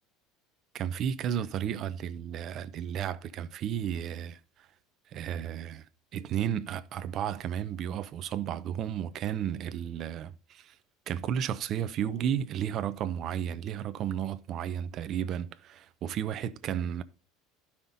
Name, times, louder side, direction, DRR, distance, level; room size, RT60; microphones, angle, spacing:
voice 1, 0.7-4.4 5.1-5.9 6.1-10.7 11.1-17.0, right 9 dB, 40° right, 0.6 m, -33 dB
12.0 x 5.7 x 4.1 m
cardioid pair, 155°, 0 cm